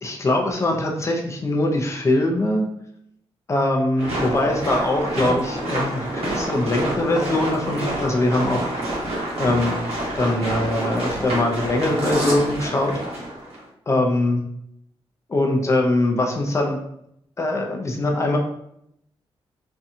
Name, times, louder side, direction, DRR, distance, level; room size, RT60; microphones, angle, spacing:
voice 1, 0.0-2.7 3.5-8.7 9.4-9.7 10.2-12.9 13.9-14.4 15.3-16.8 17.4-18.4, left 1 dB, 30° left, 1 dB, 0.5 m, -22 dB
sound 1, 4.0-13.6, right 1 dB, 80° right, 0.9 m, -27 dB
2.6 x 2.2 x 2.7 m, 0.75 s
wide cardioid pair, 130°, 10 cm